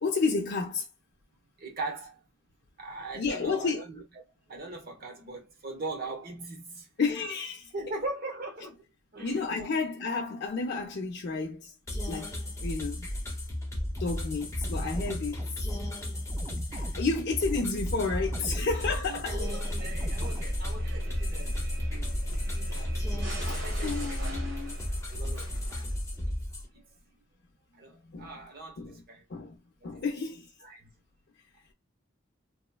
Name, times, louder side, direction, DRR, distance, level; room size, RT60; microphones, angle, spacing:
voice 1, 0.0-0.9 3.1-3.8 7.0-7.7 9.2-11.7 12.1-13.1 14.0-15.8 16.7-19.4 22.6-22.7 23.4-24.8 28.0-28.4 28.8-29.0 29.3-30.5, left 4 dB, 60° left, 0.5 m, -31 dB
voice 2, 1.6-2.2 2.8-4.0 4.5-6.9 7.7-8.8 9.1-9.7 18.4-22.1 22.4-24.4 25.1-25.9 26.7-26.8 27.8-29.2 30.6-30.9, right 2 dB, 55° right, 1.0 m, -41 dB
sound 1, 11.9-26.7, left 1 dB, 15° left, 0.7 m, -34 dB
sound 2, 13.8-21.0, right 1 dB, 20° right, 0.4 m, -43 dB
sound 3, 19.4-26.2, equal, 80° right, 1.0 m, -35 dB
3.0 x 2.1 x 2.3 m
head